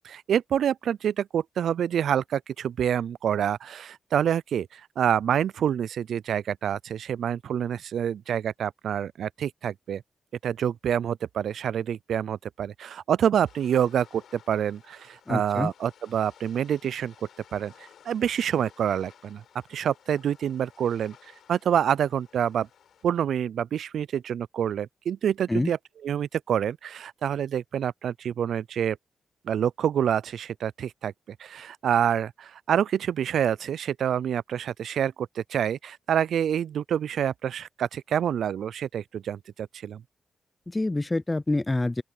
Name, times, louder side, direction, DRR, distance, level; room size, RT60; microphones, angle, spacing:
voice 1, 0.0-10.0 10.4-14.2 14.5-17.1 17.5-17.7 18.1-19.4 19.7-21.1 21.5-22.7 23.0-25.8 26.0-29.0 29.5-31.1 31.4-40.0, right 9 dB, 80° right, 0.3 m, -27 dB
sound 1, 13.4-23.1, left 8 dB, 85° left, 3.9 m, -56 dB
voice 2, 15.3-15.7 25.5-25.7 40.7-42.0, left 2 dB, 20° left, 0.4 m, -26 dB
open air
cardioid pair, 95°, 0 cm